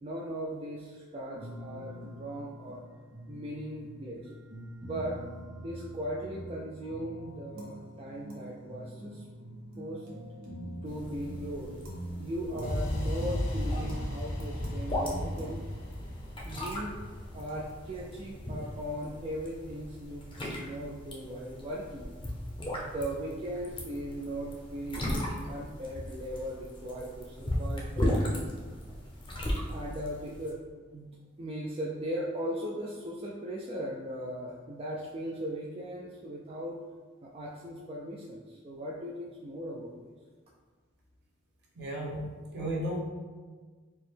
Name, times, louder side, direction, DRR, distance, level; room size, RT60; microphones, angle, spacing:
voice 1, 0.0-2.8 3.3-4.3 4.8-5.2 5.6-9.2 9.8-10.1 10.8-11.7 12.2-15.6 16.4-17.0 17.3-22.1 22.6-28.4 29.7-30.6 30.9-36.8 37.2-40.1, equal, 30° right, -4 dB, 0.3 m, -38 dB
sound 1, 1.3-15.6, equal, 90° right, 0.9 m, -44 dB
sound 2, 10.8-30.5, left 1 dB, 25° left, 0.6 m, -37 dB
sound 3, 12.6-20.6, left 1 dB, 70° left, 0.7 m, -36 dB
voice 2, 41.8-43.0, right 1 dB, 55° right, -4 dB, 0.9 m, -34 dB
4.4 x 2.1 x 3.3 m, 1.4 s
head